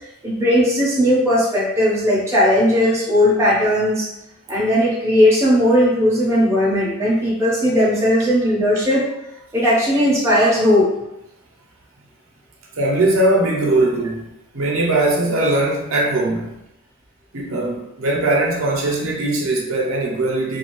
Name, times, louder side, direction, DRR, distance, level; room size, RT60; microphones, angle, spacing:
voice 1, 0.2-4.1 4.5-9.1 9.5-11.0, equal, 15° right, -6 dB, 0.6 m, -17 dB
voice 2, 12.8-14.3 14.5-16.6 17.3-20.6, right 2 dB, 65° right, -1 dB, 0.6 m, -20 dB
2.5 x 2.3 x 2.9 m, 0.86 s
head